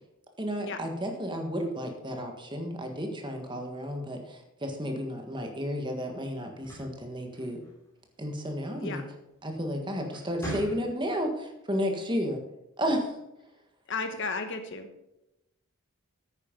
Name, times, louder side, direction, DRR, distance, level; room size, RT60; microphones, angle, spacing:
voice 1, 0.4-7.6 8.2-9.0 9.4-12.4 12.8-13.2, equal, 20° right, 4 dB, 1.6 m, -32 dB
sound 1, 6.5-8.0 9.4-9.7 10.1-11.2, right 1 dB, 15° left, 3.6 m, -41 dB
voice 2, 8.7-9.1 13.9-14.9, left 4 dB, 55° left, 7 dB, 1.2 m, -34 dB
9.8 x 9.1 x 5.2 m, 0.89 s
head